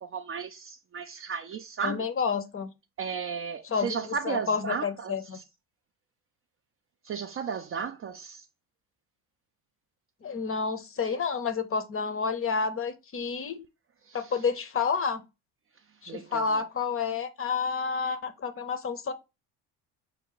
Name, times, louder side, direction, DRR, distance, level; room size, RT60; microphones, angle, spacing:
voice 1, 0.0-2.1 3.0-5.4 7.0-8.5 14.0-14.3 16.1-16.6, right 6 dB, 30° right, 0.4 m, -35 dB
voice 2, 1.8-2.7 3.6-5.4 10.2-13.6 14.1-15.2 16.0-19.1, left 5 dB, 30° left, 0.7 m, -30 dB
5.6 x 2.2 x 3.8 m
hypercardioid pair, 70°, 44 cm